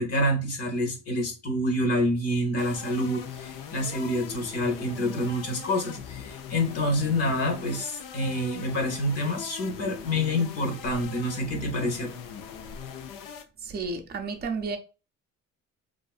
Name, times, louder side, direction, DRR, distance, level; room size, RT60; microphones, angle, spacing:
voice 1, 0.0-12.1, left 1 dB, 50° left, 1.0 m, -27 dB
sound 1, 2.6-13.4, left 8 dB, 85° left, 0.5 m, -41 dB
voice 2, 13.6-14.8, right 4 dB, 30° right, 0.5 m, -32 dB
2.6 x 2.5 x 2.3 m
cardioid pair, 110°, 32 cm